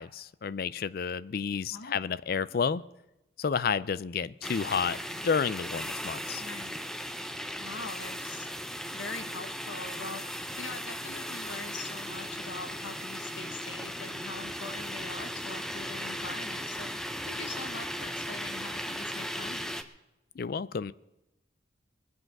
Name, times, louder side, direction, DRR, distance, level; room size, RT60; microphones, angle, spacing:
voice 1, 0.0-2.8 3.4-6.4 20.4-20.9, left 6 dB, 50° left, 18 dB, 0.4 m, -31 dB
voice 2, 1.7-2.1 6.4-6.8 7.6-8.5 8.9-16.9 17.2-19.8, left 3 dB, 80° left, 9 dB, 1.1 m, -43 dB
sound 1, 4.4-19.8, equal, 5° left, 0.6 m, -37 dB
21.5 x 7.9 x 6.0 m, 0.93 s
head